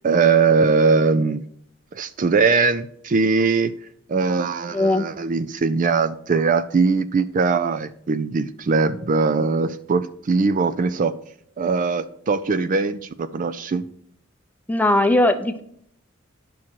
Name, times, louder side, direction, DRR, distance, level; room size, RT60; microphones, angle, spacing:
voice 1, 0.0-1.4 1.9-3.7 4.1-11.1 11.6-13.8, right 4 dB, 40° right, 12 dB, 0.4 m, -20 dB
voice 2, 4.7-5.1 14.7-15.6, left 1 dB, 10° left, 8 dB, 0.6 m, -19 dB
9.8 x 6.1 x 4.5 m, 0.67 s
head